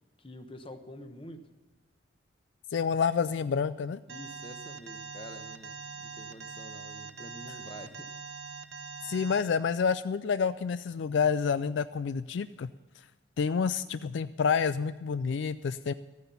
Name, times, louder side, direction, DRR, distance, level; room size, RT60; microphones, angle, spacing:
voice 1, 0.2-1.5 4.1-8.1, left 1 dB, 25° left, 8 dB, 0.9 m, -47 dB
voice 2, 2.7-4.0 9.0-12.7 13.4-15.9, left 6 dB, 65° left, 14 dB, 0.3 m, -28 dB
Alarm, 4.1-9.4, right 5 dB, 65° right, 0.9 m, -43 dB
14.0 x 9.5 x 7.0 m, 1.3 s
head